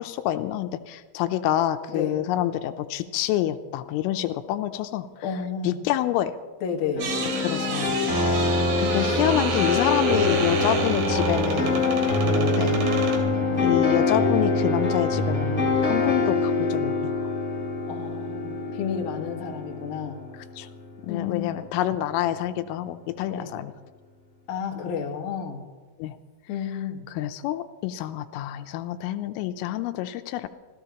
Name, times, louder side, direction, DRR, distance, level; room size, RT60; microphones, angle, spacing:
voice 1, 0.0-5.1 5.6-6.4 7.4-11.8 12.2-12.8 13.6-17.1 20.6-20.7 21.0-23.7 26.0-26.2 27.1-30.5, left 13 dB, 85° left, 9 dB, 3.3 m, -27 dB
voice 2, 5.2-5.8 6.6-7.1 12.0-12.2 17.9-20.2 21.1-21.5 23.3-23.5 24.5-25.6 26.5-27.0, left 7 dB, 55° left, 1 dB, 2.5 m, -31 dB
sound 1, 6.9-20.9, left 2 dB, 15° left, 3.6 m, -24 dB
sound 2, 7.0-13.2, right 4 dB, 70° right, 4.6 m, -31 dB
26.0 x 17.0 x 3.0 m, 1.3 s
omnidirectional pair, 5.8 m